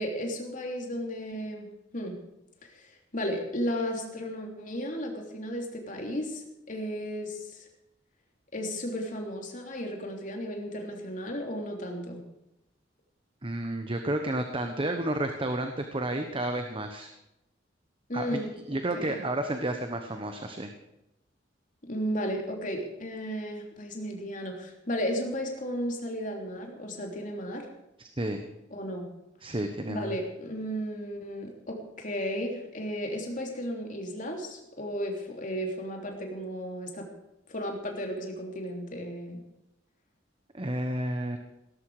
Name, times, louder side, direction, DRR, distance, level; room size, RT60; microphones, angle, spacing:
voice 1, 0.0-2.1 2.7-7.6 8.5-12.2 18.1-18.5 18.9-19.2 21.8-27.7 28.7-29.1 29.4-29.5 29.9-37.1 37.5-39.4, equal, 45° left, 2 dB, 3.3 m, -34 dB
voice 2, 13.4-17.1 18.1-18.4 18.7-20.7 28.0-28.4 29.4-30.2 40.5-41.4, right 1 dB, 30° right, 6 dB, 1.2 m, -31 dB
17.5 x 13.5 x 5.0 m, 0.89 s
head